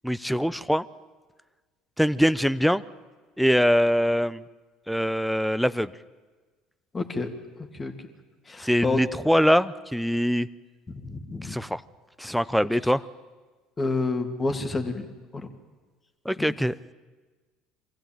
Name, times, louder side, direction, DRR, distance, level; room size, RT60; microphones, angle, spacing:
voice 1, 0.0-0.8 2.0-2.8 3.4-4.4 4.9-5.9 8.6-10.5 11.4-11.8 12.2-13.0 16.3-16.7, equal, ahead, 17 dB, 0.7 m, -23 dB
voice 2, 6.9-7.3 7.7-7.9 8.5-9.0 10.9-11.6 13.8-15.1 15.3-15.5 16.4-16.5, left 3 dB, 25° left, 6 dB, 2.6 m, -29 dB
23.5 x 15.5 x 9.0 m, 1.3 s
supercardioid pair, 85°, 0 cm